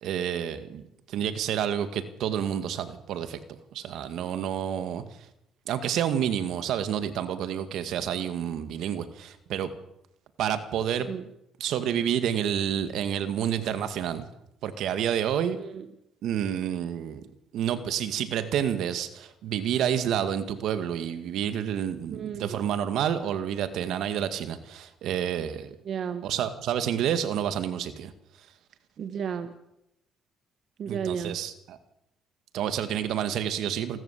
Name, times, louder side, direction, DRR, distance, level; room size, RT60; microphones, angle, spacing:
voice 1, 0.0-3.4 3.7-5.0 5.7-9.7 10.4-11.1 11.6-14.3 14.6-15.6 16.2-17.2 17.5-25.7 26.2-28.1 30.9-31.8 32.5-34.0, right 9 dB, 75° right, 10 dB, 2.0 m, -29 dB
voice 2, 15.5-15.9 22.1-22.6 25.8-26.3 29.0-29.6 30.8-31.4, right 7 dB, 55° right, 8 dB, 1.5 m, -33 dB
28.5 x 13.5 x 8.4 m, 0.84 s
cardioid pair, 115°, 0 cm